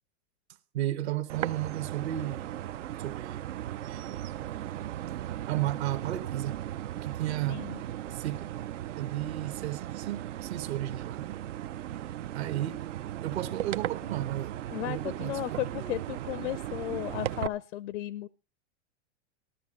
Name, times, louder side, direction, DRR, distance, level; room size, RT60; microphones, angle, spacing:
voice 1, 0.7-2.5 3.0-3.4 3.9-4.3 5.5-6.6 7.0-7.6 8.1-8.4 9.0-11.4 11.9-12.1 12.3-14.6 14.8-16.2, right 13 dB, 60° right, 1.2 m, -34 dB
sound 1, 1.3-17.5, right 12 dB, 85° right, 0.6 m, -37 dB
voice 2, 7.5-7.8 14.7-18.3, left 14 dB, 75° left, 0.5 m, -35 dB
13.5 x 13.0 x 3.7 m
supercardioid pair, 150°, 36 cm